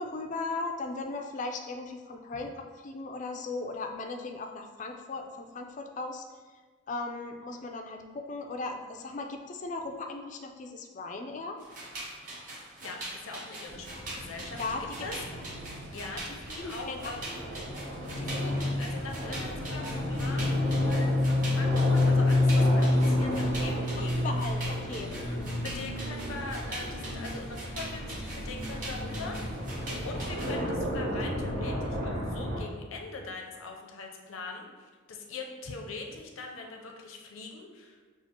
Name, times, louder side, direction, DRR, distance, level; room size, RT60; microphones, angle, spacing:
voice 1, 0.0-6.2 6.9-11.6 14.5-15.4 16.3-17.0 24.2-25.1, left 3 dB, 40° left, 4 dB, 0.3 m, -37 dB
sound 1, 11.6-30.6, right 1 dB, 40° right, 0.8 m, -43 dB
voice 2, 12.8-15.1 15.9-17.2 18.2-24.1 25.1-38.0, left 3 dB, 85° left, 1 dB, 0.6 m, -42 dB
sound 2, 13.7-32.6, left 1 dB, 90° right, 1.1 m, -30 dB
5.7 x 2.3 x 2.8 m, 1.5 s
head